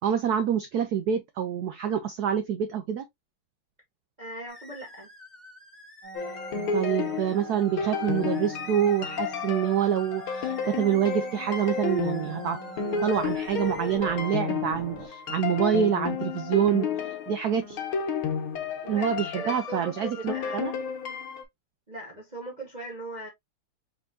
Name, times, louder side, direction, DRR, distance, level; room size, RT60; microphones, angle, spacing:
voice 1, 0.0-3.0 6.7-12.6 13.0-16.9 17.3-17.8 18.9-20.7, right 9 dB, 80° right, 0.8 m, -26 dB
voice 2, 4.2-5.1 18.8-20.7 21.9-23.3, right 1 dB, 30° right, 0.8 m, -39 dB
sound 1, 4.5-14.0, left 1 dB, ahead, 1.2 m, -49 dB
sound 2, 6.0-15.1, right 4 dB, 65° right, 2.1 m, -43 dB
sound 3, 6.1-21.4, left 5 dB, 75° left, 1.9 m, -32 dB
4.4 x 4.0 x 2.4 m
omnidirectional pair, 2.4 m